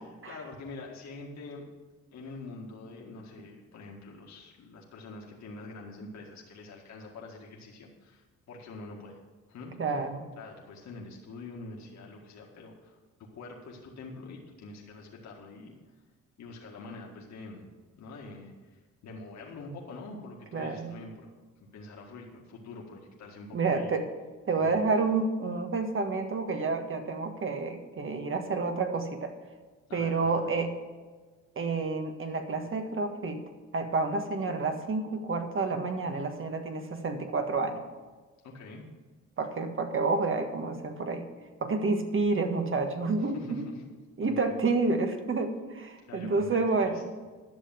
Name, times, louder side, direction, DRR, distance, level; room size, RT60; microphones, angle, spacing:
voice 1, 0.2-1.7 2.1-9.2 9.5-9.8 10.4-15.8 16.4-17.7 18.0-21.3 21.6-23.9 24.6-24.8 29.9-30.5 38.4-38.9 43.2-43.8 44.2-44.6 46.0-47.0, left 3 dB, 65° left, -2 dB, 1.9 m, -45 dB
voice 2, 9.8-10.3 20.5-20.9 23.5-24.0 24.5-29.3 29.9-30.7 31.5-33.4 33.7-37.8 39.4-41.2 41.6-43.6 44.2-47.0, right 3 dB, 45° right, 6 dB, 1.6 m, -29 dB
11.5 x 6.9 x 7.3 m, 1.3 s
cardioid pair, 90°, 30 cm